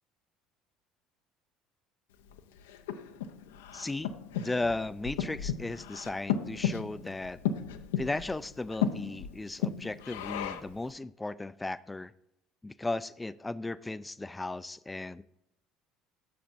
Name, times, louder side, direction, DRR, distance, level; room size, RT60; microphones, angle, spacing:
Breathing, 2.3-10.8, left 8 dB, 80° left, 0.5 m, -35 dB
voice 1, 3.7-4.1 4.4-7.4 8.0-12.1 12.6-15.2, left 2 dB, 15° left, 16 dB, 0.3 m, -36 dB
8.9 x 6.8 x 2.6 m, 0.82 s
hypercardioid pair, 60°, 0 cm